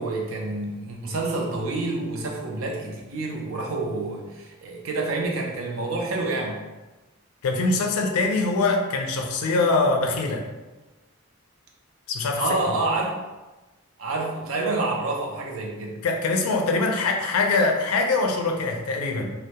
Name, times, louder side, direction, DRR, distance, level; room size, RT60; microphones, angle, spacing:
voice 1, 0.0-6.6 12.4-13.2 14.0-16.0, right 2 dB, 65° right, -1 dB, 0.5 m, -28 dB
voice 2, 7.4-10.4 12.1-12.4 16.0-19.3, left 3 dB, 90° left, 3 dB, 0.4 m, -23 dB
2.2 x 2.1 x 2.8 m, 1.1 s
head